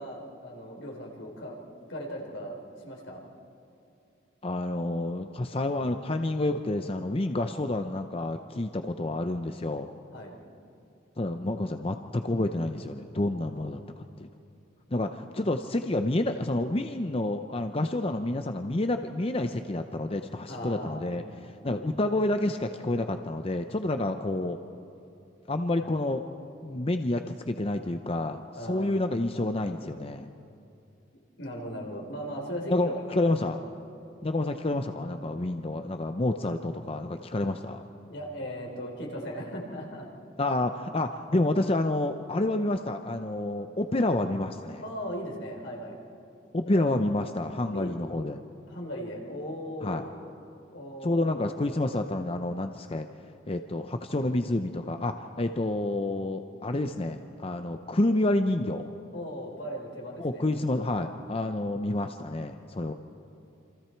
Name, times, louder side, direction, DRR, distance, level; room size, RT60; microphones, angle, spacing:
voice 1, 0.0-1.6 1.9-2.6 2.8-3.2 10.1-10.3 13.5-13.7 20.5-21.2 28.5-29.2 31.4-33.6 38.1-40.1 44.8-46.0 46.6-46.9 47.7-48.0 48.7-50.1 50.7-51.3 59.1-60.5, equal, 80° left, 0 dB, 4.0 m, -38 dB
voice 2, 4.4-9.9 11.2-14.3 14.9-24.6 25.5-26.2 26.6-30.3 32.7-33.6 34.2-37.8 40.4-44.8 46.5-48.4 49.8-50.0 51.0-53.1 53.5-58.9 60.2-62.9, left 2 dB, 30° left, 7 dB, 0.6 m, -29 dB
28.0 x 26.5 x 4.6 m, 2.7 s
head